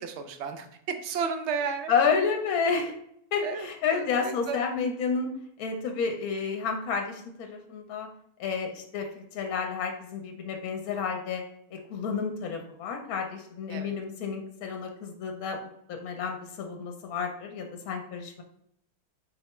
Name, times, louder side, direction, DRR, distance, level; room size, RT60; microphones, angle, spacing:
voice 1, 0.0-1.9 3.4-4.6 13.7-13.9, right 5 dB, 65° right, 7 dB, 0.7 m, -33 dB
voice 2, 1.9-2.9 3.3-5.3 5.6-8.1 8.4-11.4 11.7-15.6 15.9-18.4, left 5 dB, 75° left, 3 dB, 1.1 m, -30 dB
4.4 x 3.3 x 3.0 m, 0.70 s
omnidirectional pair, 1.6 m